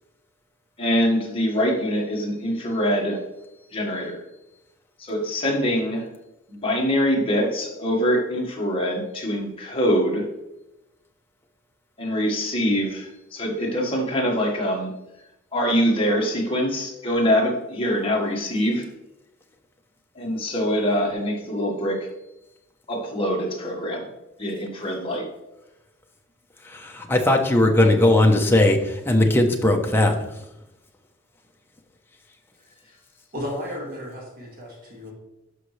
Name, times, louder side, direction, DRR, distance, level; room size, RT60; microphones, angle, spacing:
voice 1, 0.8-3.2 3.7-4.2 5.0-6.1 6.5-10.3 12.0-14.9 15.5-18.9 20.1-22.1 22.9-24.1 24.4-25.3, equal, 30° left, -1 dB, 1.7 m, -24 dB
voice 2, 26.6-30.2, left 1 dB, 10° left, 2 dB, 1.0 m, -18 dB
voice 3, 33.3-35.1, equal, 45° right, -2 dB, 2.2 m, -33 dB
11.5 x 5.3 x 3.3 m, 0.93 s
head